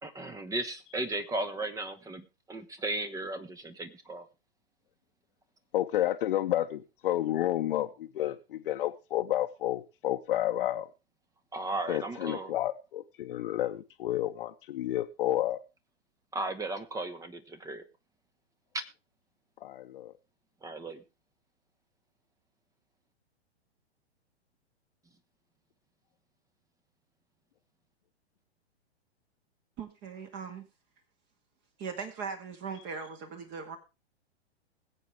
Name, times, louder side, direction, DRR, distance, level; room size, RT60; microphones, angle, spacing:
voice 1, 0.0-4.3 11.5-12.5 16.3-17.8 18.7-18.8 20.6-21.0, right 2 dB, 10° right, 12 dB, 1.2 m, -36 dB
voice 2, 5.7-10.9 11.9-15.6 19.6-20.1, left 13 dB, 55° left, 3 dB, 1.1 m, -30 dB
voice 3, 29.8-30.7 31.8-33.8, right 5 dB, 30° right, 6 dB, 2.2 m, -39 dB
21.0 x 8.1 x 3.3 m, 0.28 s
hypercardioid pair, 120°, 33 cm